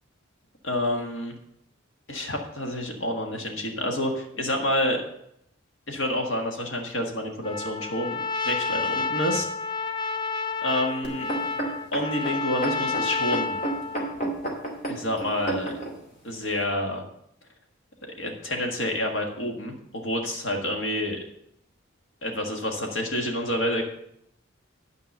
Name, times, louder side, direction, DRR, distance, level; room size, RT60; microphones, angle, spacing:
voice 1, 0.6-1.3 2.1-5.0 5.9-9.5 10.6-11.3 11.9-13.6 14.9-15.8 16.2-17.0 18.2-21.2 22.2-23.8, left 1 dB, 65° left, 2 dB, 1.7 m, -28 dB
Trumpet, 7.4-14.2, left 4 dB, 20° left, 0.5 m, -30 dB
sound 1, 11.0-15.9 16.6-16.7, right 1 dB, 40° left, 2.4 m, -31 dB
10.0 x 5.2 x 6.5 m, 0.76 s
head